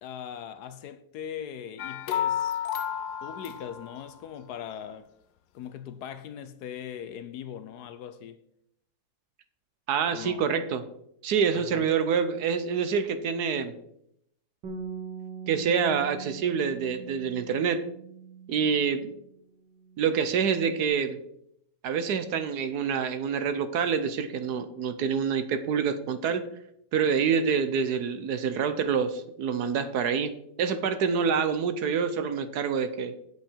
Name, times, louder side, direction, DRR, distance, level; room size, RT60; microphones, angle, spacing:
voice 1, 0.0-2.6 3.2-5.1 5.5-8.4 10.1-10.5 11.5-11.9, left 9 dB, 70° left, 1.1 m, -40 dB
sound 1, 1.8-4.3, left 9 dB, 90° left, 1.4 m, -31 dB
voice 2, 9.9-10.8 11.2-13.7 15.5-17.8 18.5-19.1 20.0-21.2 21.8-26.4 26.9-30.3 30.6-33.1, right 6 dB, 70° right, 1.2 m, -26 dB
Bass guitar, 14.6-19.3 19.6-20.9, right 6 dB, 85° right, 2.1 m, -43 dB
8.2 x 7.7 x 4.4 m
omnidirectional pair, 1.9 m